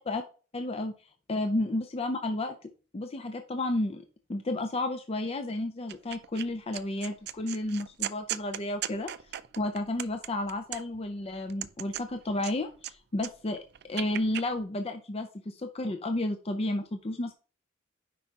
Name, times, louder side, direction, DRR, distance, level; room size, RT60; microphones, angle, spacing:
voice 1, 0.5-0.9 1.3-2.5 2.9-4.0 4.3-9.1 9.6-13.6 13.9-17.3, left 1 dB, 30° left, 7 dB, 0.5 m, -32 dB
sound 1, 5.9-6.4 6.7-11.1 11.5-12.9 13.2-14.4, right 12 dB, 55° right, 0.4 m, -37 dB
9.4 x 5.3 x 2.9 m, 0.38 s
head